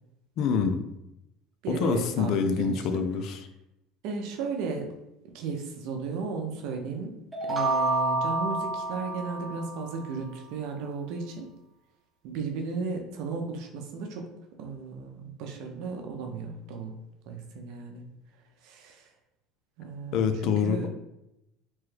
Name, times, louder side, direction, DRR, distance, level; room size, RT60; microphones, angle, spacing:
voice 1, 0.4-0.8 1.7-3.4 20.1-20.9, left 6 dB, 60° left, 7 dB, 0.4 m, -26 dB
voice 2, 1.6-3.0 4.0-4.9 5.3-7.1 7.5-11.5 12.2-14.3 14.6-17.0 17.3-18.0 18.6-19.1 19.8-20.9, right 4 dB, 70° right, 3 dB, 0.6 m, -35 dB
sound 1, 7.3-10.1, right 2 dB, 15° right, 0.5 m, -29 dB
3.0 x 2.2 x 3.2 m, 0.87 s
supercardioid pair, 115°, 0 cm